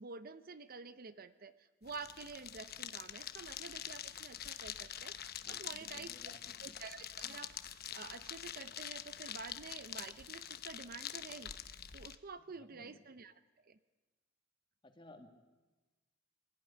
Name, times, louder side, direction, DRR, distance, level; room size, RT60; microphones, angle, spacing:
voice 1, 0.0-6.1 6.6-13.8, right 4 dB, 50° right, 12 dB, 0.9 m, -49 dB
sound 1, 1.8-12.2, left 10 dB, 50° left, 1.0 m, -46 dB
voice 2, 5.4-6.8 12.5-13.0 14.8-15.3, left 1 dB, 25° left, 6 dB, 2.1 m, -58 dB
24.0 x 17.0 x 10.0 m, 1.2 s
head